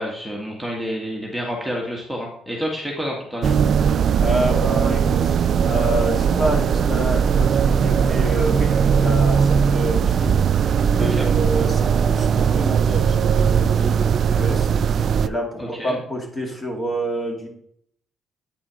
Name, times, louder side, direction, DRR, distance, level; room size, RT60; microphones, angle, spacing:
voice 1, 0.0-3.5 11.0-11.3 15.6-16.0, equal, ahead, -2 dB, 1.9 m, -29 dB
sound 1, 3.4-15.3, right 7 dB, 60° right, 0.3 m, -19 dB
voice 2, 4.2-5.3 5.6-10.4 10.9-14.7 15.2-17.5, equal, 25° left, 1 dB, 2.4 m, -28 dB
8.9 x 5.0 x 4.9 m, 0.69 s
cardioid pair, 90°, 0 cm